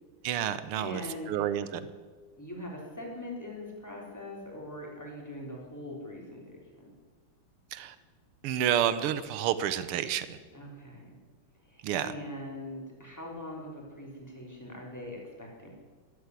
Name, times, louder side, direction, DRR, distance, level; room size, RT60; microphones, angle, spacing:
voice 1, 0.2-1.0 1.3-1.8 7.7-8.0 8.4-10.4 11.8-12.1, right 10 dB, 85° right, 13 dB, 1.8 m, -29 dB
voice 2, 0.8-1.4 2.4-6.9 10.5-11.1 11.6-15.7, left 1 dB, 5° left, -2 dB, 3.7 m, -42 dB
13.0 x 12.5 x 8.2 m, 1.4 s
omnidirectional pair, 2.4 m